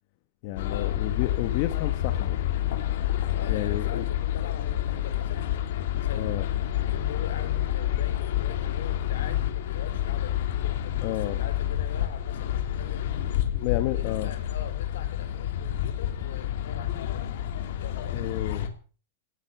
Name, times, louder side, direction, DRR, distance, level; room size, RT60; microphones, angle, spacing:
voice 1, 0.4-2.4 3.5-4.0 6.1-6.5 11.0-11.4 13.5-14.3 18.1-18.7, left 14 dB, 35° left, 9 dB, 1.2 m, -31 dB
sound 1, 0.6-18.7, left 12 dB, 55° left, 3.2 m, -28 dB
voice 2, 3.3-5.5 6.0-6.3 6.8-10.4 10.8-13.1 13.7-17.3 17.8-18.4, left 8 dB, 75° left, 10 dB, 4.1 m, -43 dB
18.0 x 10.5 x 7.2 m, 0.40 s
supercardioid pair, 170°, 0 cm